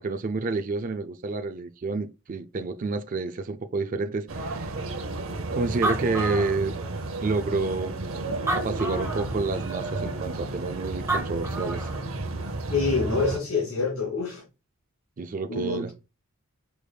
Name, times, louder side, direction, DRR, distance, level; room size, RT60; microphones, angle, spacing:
voice 1, 0.0-4.7 5.5-6.7 7.2-8.0 8.3-11.9 15.2-15.9, right 3 dB, 40° right, 0.3 m, -29 dB
sound 1, 4.3-13.4, right 2 dB, 65° right, 0.7 m, -32 dB
Animal, 5.4-5.5 5.6-7.1 7.7-7.8 8.3-9.3 10.8-10.9 11.1-12.0, right 2 dB, 15° right, 1.0 m, -30 dB
voice 2, 12.7-14.4 15.5-15.9, left 4 dB, 75° left, 2.5 m, -26 dB
5.0 x 4.7 x 2.2 m
head